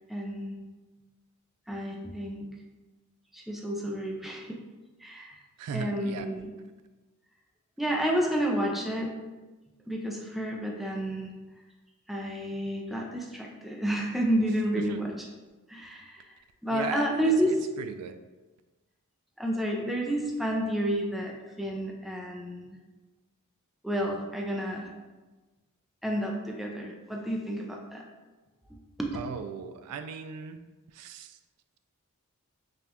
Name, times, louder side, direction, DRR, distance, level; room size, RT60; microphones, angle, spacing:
voice 1, 0.1-0.6 1.7-2.5 3.3-4.6 5.0-5.4 5.7-6.5 7.8-9.1 9.9-11.3 12.1-15.3 15.7-16.4 16.6-17.6 19.4-22.8 23.8-24.9 26.0-28.0 29.0-29.2, right 1 dB, ahead, -1 dB, 0.4 m, -30 dB
voice 2, 5.6-6.3 14.9-15.0 16.7-17.3 17.8-18.1 29.1-30.6 31.0-31.3, right 6 dB, 80° right, 9 dB, 0.3 m, -37 dB
5.2 x 2.3 x 2.8 m, 1.2 s
head